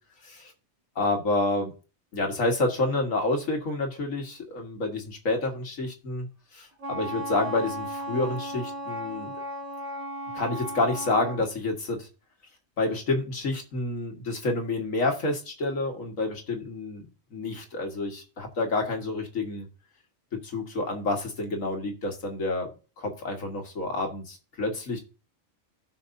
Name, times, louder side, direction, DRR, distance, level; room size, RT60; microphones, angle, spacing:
voice 1, 1.0-1.7 2.1-6.3 6.5-9.3 10.3-12.1 12.8-17.1 17.3-19.7 20.4-22.7 23.0-25.0, left 2 dB, 75° left, 2 dB, 2.0 m, -29 dB
Wind instrument woodwind instrument, 6.8-11.4, equal, 55° right, 2.0 m, -35 dB
16.0 x 5.8 x 2.7 m, 0.33 s
omnidirectional pair, 1.4 m